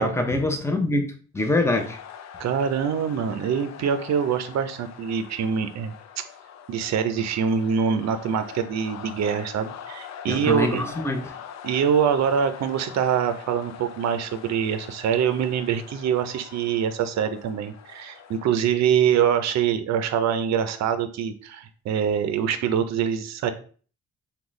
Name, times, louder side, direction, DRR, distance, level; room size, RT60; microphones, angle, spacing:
voice 1, 0.0-2.0 10.3-11.3, left 2 dB, 10° left, 0.7 m, -24 dB
sound 1, 1.7-18.5, left 8 dB, 65° left, 0.5 m, -43 dB
voice 2, 2.4-5.9 6.7-10.9 11.6-23.5, right 8 dB, 60° right, 0.6 m, -24 dB
3.7 x 2.3 x 3.1 m
cardioid pair, 90°, 30 cm